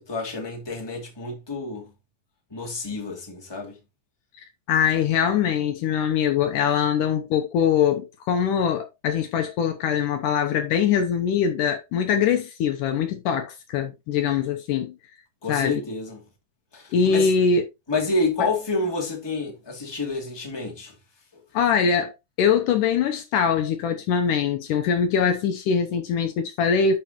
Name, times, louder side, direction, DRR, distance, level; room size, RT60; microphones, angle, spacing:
voice 1, 0.1-1.9 2.5-3.8 15.4-16.2 16.7-17.3 17.9-20.9 21.3-21.4, left 3 dB, 10° left, 2.2 m, -29 dB
voice 2, 4.7-14.9 15.5-15.8 16.9-17.6 21.5-27.0, left 7 dB, 75° left, 2.3 m, -22 dB
11.5 x 5.4 x 3.0 m
omnidirectional pair, 4.0 m